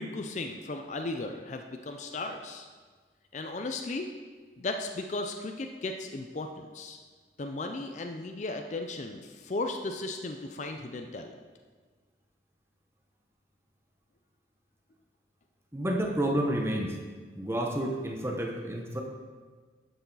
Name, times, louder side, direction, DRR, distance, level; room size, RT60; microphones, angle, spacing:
voice 1, 0.0-2.7 3.3-4.1 4.6-7.0 7.4-11.3, left 2 dB, 40° left, 5 dB, 0.5 m, -36 dB
voice 2, 15.7-17.0 17.4-19.0, right 1 dB, 15° right, 2 dB, 0.9 m, -30 dB
11.0 x 6.9 x 4.0 m, 1.5 s
head